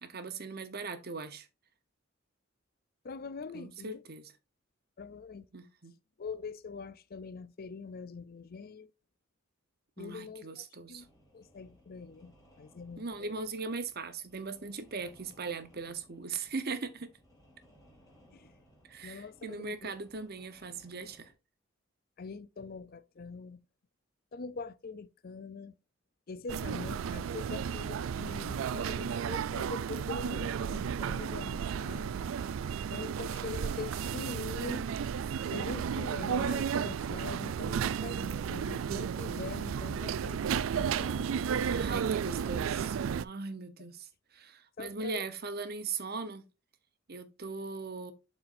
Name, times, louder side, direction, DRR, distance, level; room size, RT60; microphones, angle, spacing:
voice 1, 0.0-1.5 3.5-4.3 5.5-5.9 10.0-11.0 13.0-17.1 18.9-21.3 36.4-36.5 41.7-44.1 44.3-46.4 47.1-48.1, right 4 dB, 50° right, 1.0 m, -39 dB
voice 2, 3.0-4.0 5.0-5.5 6.2-8.9 10.0-11.1 11.3-13.4 18.3-18.5 19.0-19.9 22.2-23.6 24.3-25.7 26.3-32.2 32.9-34.9 35.5-41.4 44.8-45.3, left 4 dB, 50° left, 0.5 m, -43 dB
sound 1, 11.0-21.3, equal, 20° left, 2.6 m, -63 dB
sound 2, 26.5-43.2, right 7 dB, 90° right, 0.4 m, -33 dB
11.5 x 4.3 x 2.6 m
head